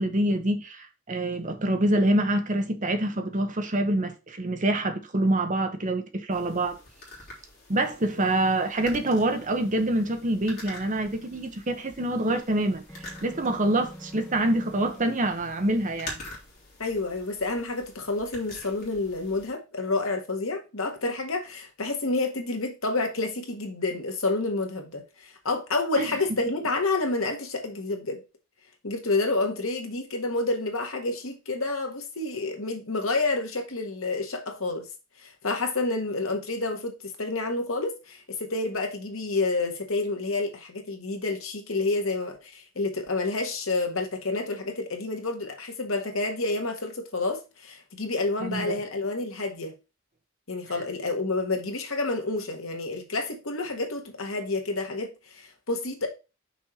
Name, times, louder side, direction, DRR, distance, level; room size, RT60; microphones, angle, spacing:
voice 1, 0.0-6.8 7.7-12.8 13.2-16.2 26.0-26.1 48.4-48.8, right 1 dB, 40° right, 1.0 m, -26 dB
sound 1, 6.3-19.5, left 1 dB, 45° left, 3.1 m, -46 dB
sound 2, 12.9-15.1, equal, 5° left, 0.8 m, -44 dB
voice 2, 16.8-28.2 28.8-34.9 35.2-49.7 50.5-56.1, left 3 dB, 85° left, 1.7 m, -29 dB
6.0 x 4.5 x 5.0 m
head